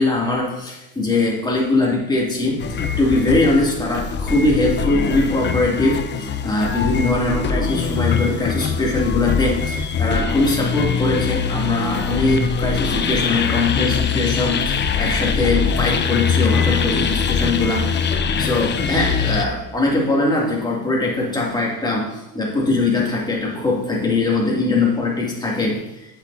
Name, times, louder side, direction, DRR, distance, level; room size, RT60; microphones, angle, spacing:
voice 1, 0.0-26.2, left 2 dB, 10° left, -3 dB, 2.4 m, -21 dB
sound 1, 2.6-19.5, left 6 dB, 30° left, 0.7 m, -22 dB
7.9 x 6.8 x 2.7 m, 0.94 s
supercardioid pair, 85°, 35 cm